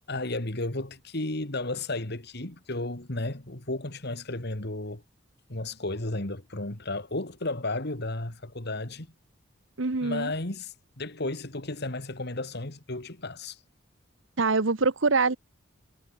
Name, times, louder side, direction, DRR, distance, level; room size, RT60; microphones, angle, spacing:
voice 1, 0.1-5.0 5.5-9.1 10.0-13.6, left 2 dB, 55° left, 2.5 m, -33 dB
voice 2, 9.8-10.3 14.4-15.4, right 3 dB, 70° right, 1.1 m, -24 dB
head